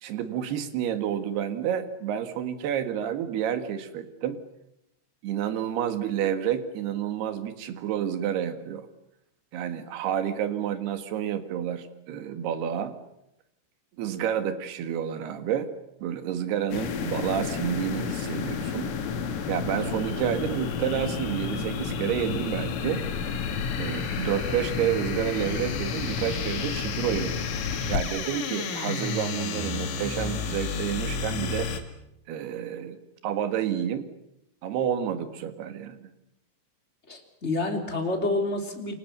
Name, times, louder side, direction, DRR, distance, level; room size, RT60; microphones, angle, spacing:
voice 1, 0.0-4.4 5.2-8.9 9.5-12.9 14.0-15.7 16.0-18.9 19.5-23.0 23.8-27.4 27.9-31.7 32.3-33.0 33.2-34.1 34.6-36.1, right 9 dB, 60° right, 9 dB, 3.5 m, -29 dB
sound 1, 16.7-31.8, left 6 dB, 85° left, 5.0 m, -31 dB
voice 2, 37.1-38.9, left 2 dB, 15° left, 3 dB, 2.8 m, -28 dB
28.5 x 25.5 x 6.8 m, 0.84 s
omnidirectional pair, 5.7 m